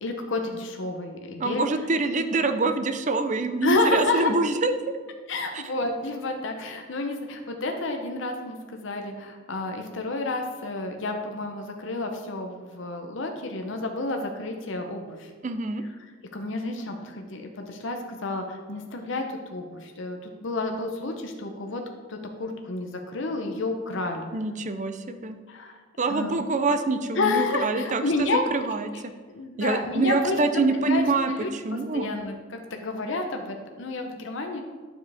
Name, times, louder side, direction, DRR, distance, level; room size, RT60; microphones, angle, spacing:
voice 1, 0.0-1.6 3.6-4.3 5.3-15.3 16.3-21.8 22.1-24.3 25.5-25.7 26.1-26.4 27.2-28.5 29.3-31.0 31.3-31.5 31.9-34.6, left 2 dB, 65° left, 4 dB, 0.8 m, -30 dB
voice 2, 1.4-4.7 5.5-5.6 15.4-15.8 24.3-25.4 26.0-29.1 29.6-32.1, right 3 dB, 35° right, 9 dB, 0.5 m, -25 dB
9.5 x 7.2 x 3.5 m, 1.5 s
head